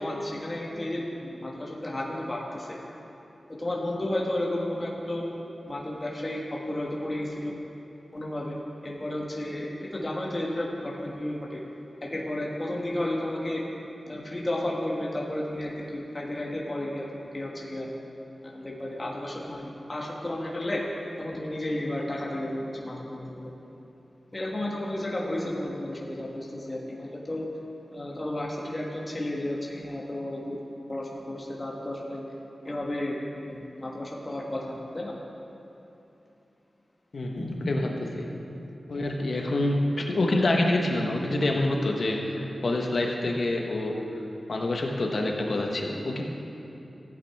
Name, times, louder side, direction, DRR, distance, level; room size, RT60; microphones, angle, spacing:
voice 1, 0.0-2.8 3.5-7.5 8.1-11.6 12.0-13.6 14.1-17.9 18.4-20.9 21.2-23.5 24.3-27.5 27.9-30.6 30.9-32.2 32.6-35.2 37.4-37.7, left 1 dB, 30° left, -3 dB, 1.5 m, -32 dB
voice 2, 37.1-38.3 38.9-44.0 44.5-46.2, left 2 dB, 65° left, 1 dB, 1.2 m, -27 dB
14.5 x 8.9 x 3.6 m, 3.0 s
wide cardioid pair, 65°, 0 cm